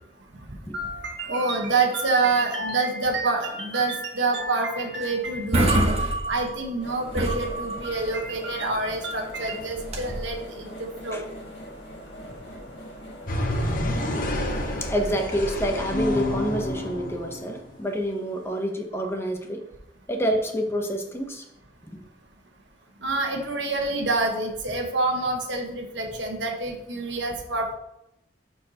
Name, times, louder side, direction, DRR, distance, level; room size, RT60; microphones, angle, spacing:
voice 1, 0.7-5.9 6.3-11.2 23.0-27.7, right 3 dB, 90° right, 1 dB, 1.2 m, -27 dB
sound 1, 5.0-5.1 5.3-6.8 7.1-8.1 9.8-10.3, right 1 dB, 35° right, 1.1 m, -25 dB
sound 2, 6.8-15.3, equal, 85° left, 1.8 m, -42 dB
sound 3, 13.3-17.8, left 1 dB, 50° left, 1.0 m, -28 dB
voice 2, 14.8-19.6 20.1-21.4, equal, 15° left, 3 dB, 0.9 m, -27 dB
11.0 x 4.6 x 2.9 m, 0.83 s
head